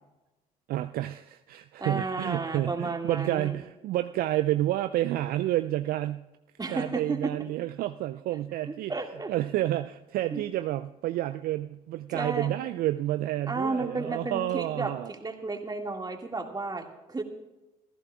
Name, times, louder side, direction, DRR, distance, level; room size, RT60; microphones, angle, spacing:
voice 1, 0.7-6.3 6.7-8.9 9.3-15.1, right 14 dB, 55° right, 11 dB, 0.4 m, -30 dB
voice 2, 1.8-3.6 6.6-7.3 8.7-9.3 10.3-10.4 12.1-12.5 13.5-17.2, right 3 dB, 20° right, 3 dB, 2.1 m, -33 dB
25.0 x 15.0 x 2.4 m, 1.0 s
figure-of-eight pair, 50°, 19 cm